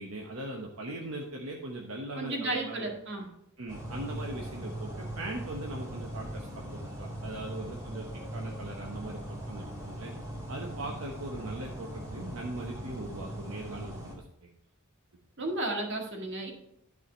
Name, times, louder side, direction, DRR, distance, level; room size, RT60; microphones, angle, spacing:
voice 1, 0.0-2.9 3.6-8.1 8.3-10.1 10.5-14.1 14.4-14.5, right 2 dB, 75° right, 0 dB, 1.0 m, -40 dB
voice 2, 2.1-3.3 15.4-16.5, right 2 dB, 60° right, 1 dB, 1.8 m, -33 dB
sound 1, 3.7-14.1, right 1 dB, 15° right, 2.1 m, -40 dB
11.0 x 4.9 x 4.4 m, 0.78 s
head